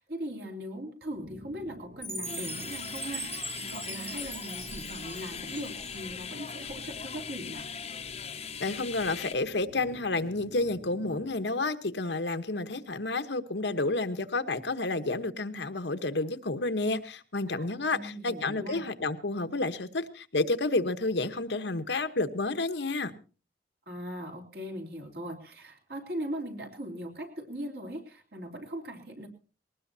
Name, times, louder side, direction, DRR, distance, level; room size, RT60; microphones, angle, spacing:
voice 1, 0.0-7.7 17.5-18.9 23.9-29.3, equal, 60° right, 3 dB, 3.4 m, -39 dB
sound 1, 1.1-11.5, equal, 40° right, 0.8 m, -49 dB
Chime, 2.0-6.3, right 1 dB, 15° right, 1.0 m, -40 dB
sound 2, 2.2-9.3, left 7 dB, 35° left, 0.8 m, -40 dB
voice 2, 8.6-23.1, left 2 dB, 75° left, 9 dB, 1.1 m, -30 dB
20.5 x 19.0 x 2.7 m, 0.36 s
head